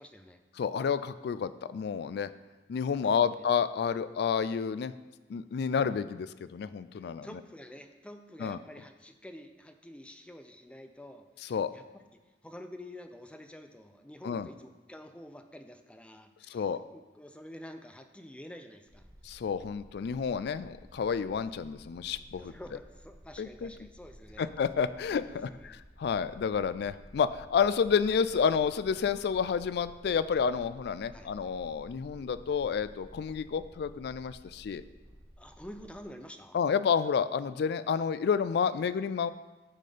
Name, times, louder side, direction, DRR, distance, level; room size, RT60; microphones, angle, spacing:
voice 1, 0.0-0.4 1.2-1.4 3.0-3.4 6.9-11.8 12.1-19.1 22.3-24.5 25.3-25.8 31.1-31.3 35.4-36.6, left 1 dB, 5° left, 7 dB, 0.5 m, -49 dB
voice 2, 0.6-2.3 2.7-4.9 5.3-7.3 8.4-8.6 11.5-11.7 14.2-14.5 16.5-16.8 19.2-22.5 23.4-23.7 24.4-25.5 26.0-34.8 36.5-39.3, left 6 dB, 65° left, 14 dB, 0.3 m, -30 dB
sound 1, 18.9-36.1, equal, 10° right, 1.3 m, -53 dB
9.9 x 4.3 x 5.0 m, 1.2 s
head